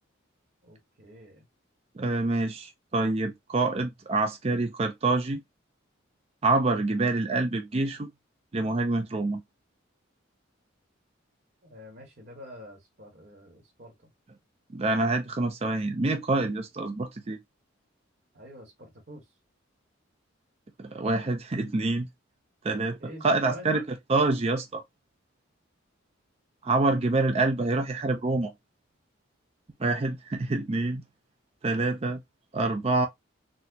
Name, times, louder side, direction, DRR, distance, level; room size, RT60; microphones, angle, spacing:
voice 1, 0.6-1.5 11.6-14.1 18.3-19.4 23.0-23.8, equal, 50° right, 1.1 m, -47 dB
voice 2, 1.9-5.4 6.4-8.1 8.5-9.4 14.7-17.4 20.8-22.1 22.6-23.0 23.2-23.8 24.1-24.8 26.6-28.5 29.8-31.0 31.6-32.2 32.5-33.1, right 2 dB, 30° right, 0.4 m, -26 dB
4.1 x 2.0 x 2.6 m
head